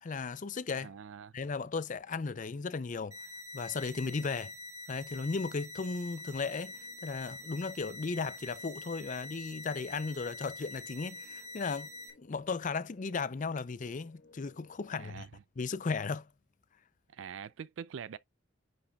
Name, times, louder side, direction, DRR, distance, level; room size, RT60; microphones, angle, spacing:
voice 1, 0.0-0.9 1.3-3.2 3.5-4.5 4.9-6.7 7.0-11.9 12.2-15.3 15.6-16.3, left 4 dB, 40° left, 0.5 m, -35 dB
voice 2, 0.8-1.3 14.9-15.4 17.1-18.2, right 7 dB, 70° right, 0.4 m, -44 dB
sound 1, 3.1-12.1, left 1 dB, 15° right, 1.7 m, -46 dB
sound 2, 6.3-14.8, left 2 dB, 55° left, 1.5 m, -64 dB
10.0 x 5.4 x 2.3 m
head